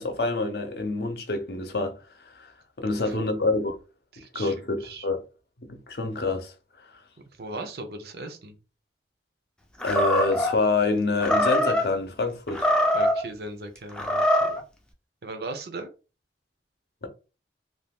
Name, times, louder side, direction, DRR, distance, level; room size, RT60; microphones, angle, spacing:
voice 1, 0.0-2.0 2.3-2.5 2.8-3.8 4.3-5.2 5.6-6.5 9.8-12.7 17.0-17.1, left 3 dB, 65° left, 0.6 m, -27 dB
voice 2, 4.1-5.1 7.4-8.5 12.9-14.5 15.2-15.9, right 2 dB, 60° right, 0.6 m, -38 dB
Animal, 9.8-10.5 11.2-11.9 12.5-13.2 13.9-14.6, equal, 5° left, 0.4 m, -23 dB
2.5 x 2.3 x 3.5 m
head